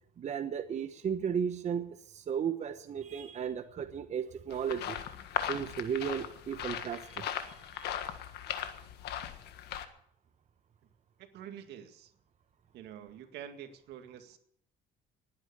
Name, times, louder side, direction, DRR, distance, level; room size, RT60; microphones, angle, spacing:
voice 1, 0.2-5.0 5.5-7.9, right 7 dB, 45° right, 8 dB, 1.1 m, -35 dB
sound 1, 4.5-9.9, left 10 dB, 75° left, 1.6 m, -38 dB
voice 2, 11.3-12.1 12.7-14.4, right 9 dB, 80° right, 7 dB, 2.0 m, -47 dB
19.5 x 9.8 x 6.9 m, 0.67 s
cardioid pair, 110°, 17 cm